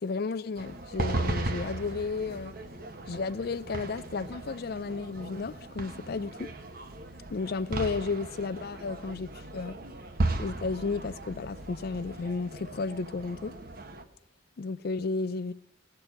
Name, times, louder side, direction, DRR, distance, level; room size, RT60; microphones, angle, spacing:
voice 1, 0.0-2.5 3.1-6.5 7.3-9.8 10.4-13.5 14.6-15.5, left 4 dB, 55° left, 0.5 m, -33 dB
sound 1, 0.6-14.0, right 2 dB, 55° right, 1.1 m, -36 dB
16.5 x 6.8 x 8.1 m
head